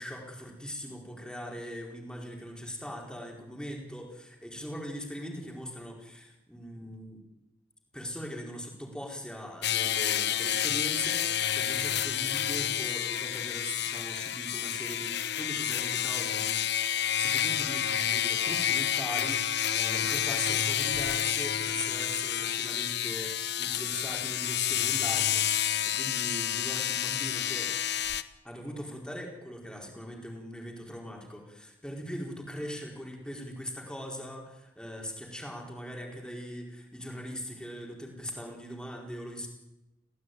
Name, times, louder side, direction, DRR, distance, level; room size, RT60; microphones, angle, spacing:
voice 1, 0.0-7.2 7.9-16.9 17.2-27.7 28.4-39.5, equal, 5° left, 0 dB, 4.6 m, -40 dB
sound 1, 9.6-28.2, left 10 dB, 60° left, 1.1 m, -29 dB
29.0 x 17.5 x 9.4 m, 1.0 s
head